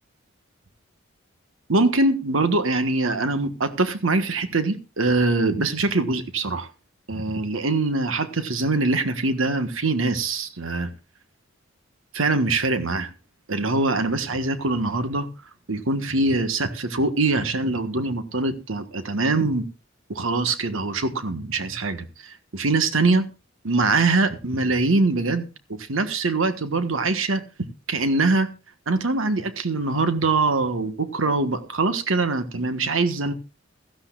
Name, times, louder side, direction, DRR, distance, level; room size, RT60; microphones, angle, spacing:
voice 1, 1.7-6.7 7.1-10.9 12.1-13.1 13.5-15.3 15.7-19.6 20.1-23.3 23.6-27.4 27.9-28.5 28.9-33.3, right 3 dB, 80° right, 1.4 m, -23 dB
16.5 x 14.0 x 2.4 m
head